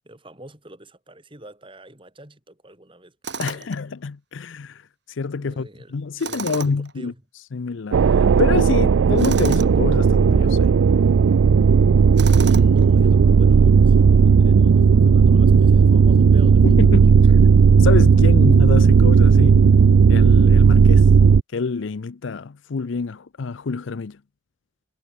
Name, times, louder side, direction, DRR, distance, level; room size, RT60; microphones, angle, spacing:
voice 1, 0.0-3.2 3.5-3.8 5.4-6.0 6.2-7.2 12.2-17.1, right 1 dB, 25° right, 3.0 m, -45 dB
Tools, 3.2-3.8 6.2-6.9 9.2-9.7 12.2-12.9, right 5 dB, 55° right, 2.7 m, -32 dB
voice 2, 3.4-4.8 5.1-7.1 7.5-10.7 16.6-17.1 17.8-19.7 20.1-21.1 21.5-24.2, left 4 dB, 70° left, 0.5 m, -27 dB
sound 1, 7.9-21.4, right 5 dB, 80° right, 0.4 m, -14 dB
head